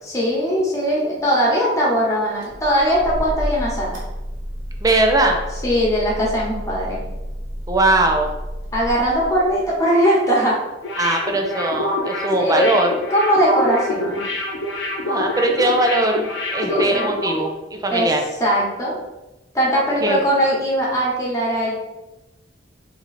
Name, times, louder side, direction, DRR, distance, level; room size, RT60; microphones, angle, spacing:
voice 1, 0.0-4.0 5.6-7.0 8.7-10.6 12.3-12.7 13.1-14.2 16.7-17.1 17.9-18.1 18.4-19.0 19.5-21.7, equal, 15° left, -4 dB, 1.3 m, -20 dB
sound 1, 2.4-9.8, equal, 85° right, 1.6 m, -31 dB
voice 2, 4.8-5.4 7.7-8.3 11.0-13.0 15.0-17.5 17.8-18.2 20.0-20.2, right 2 dB, 20° right, 2 dB, 0.5 m, -19 dB
sound 2, 10.8-17.5 17.7-17.9, left 1 dB, 70° left, 0.8 m, -26 dB
4.0 x 3.1 x 4.1 m, 1.0 s
head